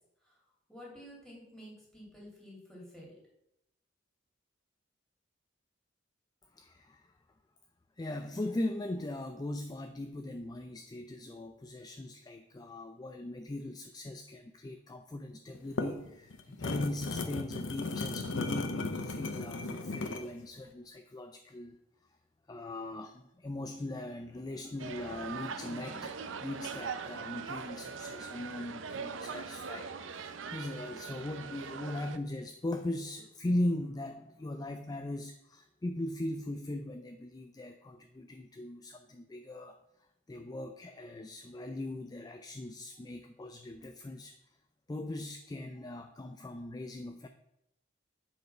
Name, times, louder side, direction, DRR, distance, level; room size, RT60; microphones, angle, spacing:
voice 1, 0.7-3.2, equal, ahead, -5 dB, 2.9 m, -50 dB
voice 2, 6.5-7.1 8.0-21.8 22.5-39.8 40.3-44.4 44.9-47.3, left 1 dB, 20° left, 7 dB, 0.4 m, -39 dB
sound 1, 15.5-20.3, left 3 dB, 80° left, 0.7 m, -36 dB
sound 2, 24.8-32.2, right 5 dB, 85° right, 0.6 m, -41 dB
7.9 x 4.7 x 5.5 m, 0.82 s
head